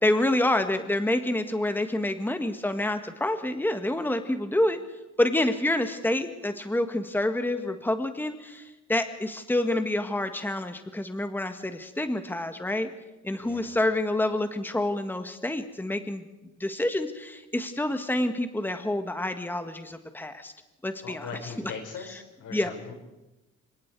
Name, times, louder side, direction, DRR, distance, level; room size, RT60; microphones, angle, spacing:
voice 1, 0.0-4.8 5.2-12.9 13.2-16.2 16.6-20.5 20.8-21.7 22.1-22.2 22.5-22.7, left 1 dB, 5° left, 8 dB, 1.7 m, -28 dB
voice 2, 21.0-22.9, left 5 dB, 80° left, 3 dB, 5.8 m, -40 dB
26.0 x 22.5 x 4.8 m, 1.0 s
cardioid pair, 90°, 30 cm